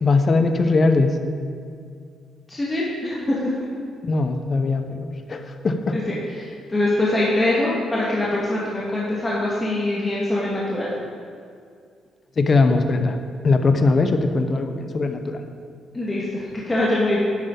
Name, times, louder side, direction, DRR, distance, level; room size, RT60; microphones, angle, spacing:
voice 1, 0.0-1.2 4.0-6.0 12.4-13.2 13.4-15.4, left 3 dB, 40° left, 7 dB, 0.8 m, -20 dB
voice 2, 2.5-3.5 5.9-6.0 6.7-10.9 15.9-17.2, left 1 dB, 20° left, -7 dB, 1.7 m, -23 dB
11.0 x 8.0 x 3.9 m, 2.2 s
cardioid pair, 90°, 0 cm